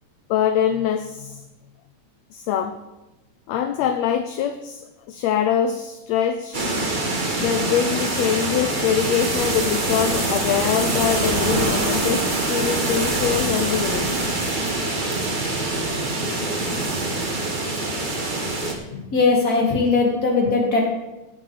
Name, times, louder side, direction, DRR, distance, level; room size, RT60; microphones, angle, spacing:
voice 1, 0.3-1.4 2.3-2.8 3.5-6.6 7.3-14.1 18.9-19.1 19.7-19.8, left 9 dB, 75° left, 8 dB, 1.8 m, -24 dB
sound 1, 6.5-18.7, right 2 dB, 45° right, 0.6 m, -24 dB
voice 2, 18.9-20.8, left 3 dB, 30° left, -2 dB, 3.1 m, -19 dB
16.5 x 8.5 x 4.1 m, 1.0 s
omnidirectional pair, 3.3 m